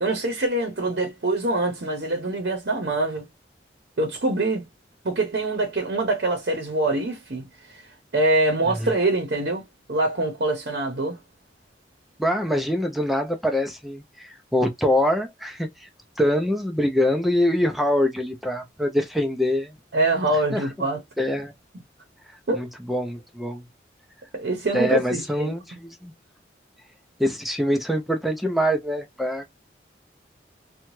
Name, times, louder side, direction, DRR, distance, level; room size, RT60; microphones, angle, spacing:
voice 1, 0.0-3.2 4.0-4.7 5.0-7.4 7.7-7.8 8.1-9.6 9.9-11.2 19.9-21.0 22.5-22.6 24.3-25.5, right 2 dB, 65° right, 0.7 m, -24 dB
voice 2, 12.2-15.9 16.2-19.8 20.5-20.9 21.2-21.5 22.5-23.6 24.7-26.1 27.2-29.4, left 1 dB, ahead, 0.4 m, -24 dB
2.7 x 2.2 x 3.0 m
head